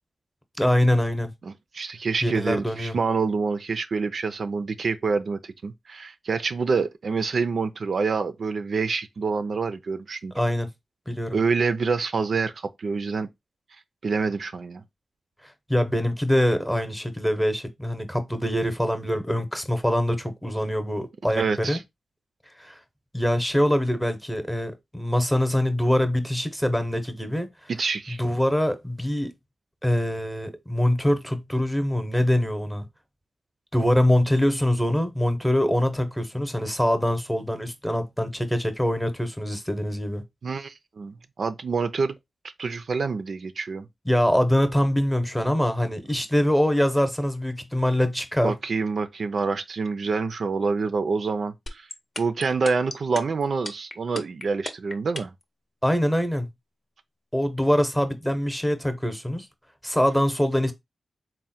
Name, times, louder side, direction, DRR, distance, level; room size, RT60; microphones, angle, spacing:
voice 1, 0.6-1.3 2.2-3.0 10.3-10.7 11.1-11.4 15.7-21.8 22.6-22.8 23.1-27.5 28.1-29.3 29.8-32.9 33.7-40.2 44.1-48.5 55.8-56.5 57.3-59.5 59.8-60.7, equal, 5° left, 0.8 m, -24 dB
voice 2, 1.4-10.3 11.3-12.5 12.8-13.3 14.0-14.8 21.3-21.8 27.7-28.2 40.4-42.1 42.6-43.9 48.4-51.9 52.2-55.3, right 4 dB, 70° right, 0.4 m, -27 dB
sound 1, 51.7-55.4, left 2 dB, 50° left, 0.7 m, -33 dB
3.6 x 2.1 x 4.1 m
cardioid pair, 55°, 0 cm